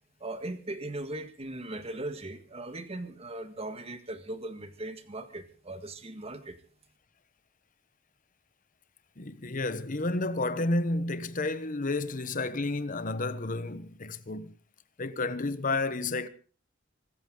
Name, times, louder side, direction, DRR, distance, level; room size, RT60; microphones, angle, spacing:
voice 1, 0.2-6.6, right 2 dB, 30° right, 1.8 m, -39 dB
voice 2, 9.2-14.5 15.0-16.3, left 2 dB, 45° left, 1.1 m, -31 dB
25.0 x 14.0 x 3.9 m
head